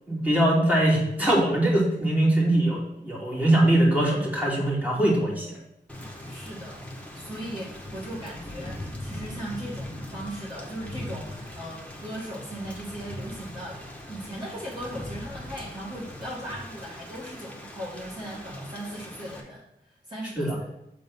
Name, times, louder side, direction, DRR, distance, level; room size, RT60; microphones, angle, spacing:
voice 1, 0.1-5.6 20.4-20.6, right 1 dB, 10° right, -5 dB, 2.7 m, -22 dB
Thunder / Rain, 5.9-19.4, left 1 dB, 5° left, 1.4 m, -40 dB
voice 2, 6.3-6.8 7.1-20.7, right 1 dB, 25° right, -7 dB, 2.0 m, -38 dB
7.7 x 4.0 x 5.4 m, 0.82 s
wide cardioid pair, 90°, 18 cm